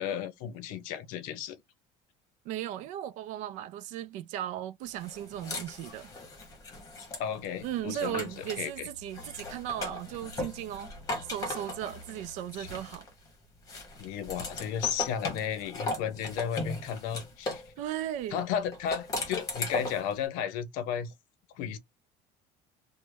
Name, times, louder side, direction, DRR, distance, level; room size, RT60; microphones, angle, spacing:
voice 1, 0.0-1.6 7.2-8.3 8.6-8.9 12.6-12.7 14.0-17.6 18.3-21.1 21.6-21.8, left 8 dB, 70° left, 0.6 m, -33 dB
voice 2, 2.5-6.1 7.6-10.9 11.3-13.1 17.8-18.4, right 11 dB, 60° right, 0.4 m, -36 dB
sound 1, 5.0-8.7 9.1-13.3 13.7-17.7 18.7-20.1, left 2 dB, 25° left, 1.0 m, -38 dB
sound 2, 7.7-12.8, left 2 dB, 30° right, 1.8 m, -53 dB
3.0 x 2.1 x 3.4 m
cardioid pair, 170°, 14 cm